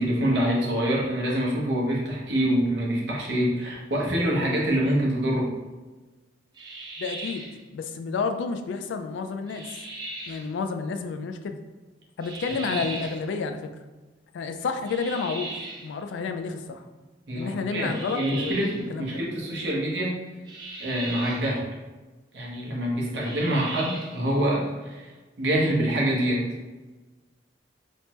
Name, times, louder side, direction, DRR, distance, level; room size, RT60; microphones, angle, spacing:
voice 1, 0.0-5.5 12.7-12.8 17.3-20.2 20.8-21.7 22.3-26.5, right 1 dB, 65° right, -3 dB, 0.8 m, -26 dB
sound 1, 6.6-7.6 9.5-10.5 12.2-13.3 14.9-15.9 17.8-18.9 20.5-21.5 23.1-24.2, right 2 dB, 25° right, 0.4 m, -38 dB
voice 2, 7.0-9.8 10.3-11.6 12.2-13.7 14.3-15.5 15.8-16.9 17.3-19.2, left 4 dB, 80° left, 7 dB, 0.3 m, -30 dB
3.3 x 2.1 x 2.8 m, 1.2 s
head